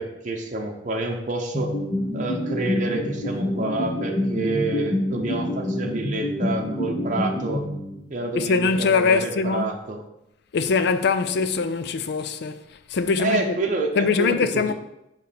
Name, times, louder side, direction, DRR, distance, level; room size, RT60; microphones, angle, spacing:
voice 1, 0.0-1.8 2.1-7.7 8.1-10.0 13.2-14.7, right 2 dB, 45° right, 0.8 m, -28 dB
sound 1, 1.5-8.2, left 1 dB, 30° left, 1.4 m, -27 dB
voice 2, 8.3-9.7 10.5-12.6 12.9-13.5 14.0-14.7, left 4 dB, 65° left, 0.4 m, -22 dB
6.9 x 3.2 x 5.1 m
head